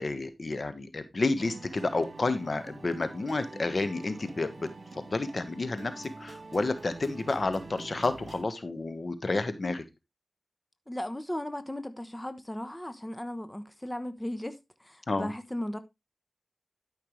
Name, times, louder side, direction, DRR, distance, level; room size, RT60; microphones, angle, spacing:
voice 1, 0.0-9.8 15.1-15.3, left 3 dB, 60° left, 1.4 m, -30 dB
sound 1, 1.4-8.4, right 3 dB, 65° right, 1.8 m, -46 dB
voice 2, 10.9-15.8, left 1 dB, 15° left, 1.1 m, -36 dB
12.5 x 5.8 x 3.3 m
cardioid pair, 45°, 0 cm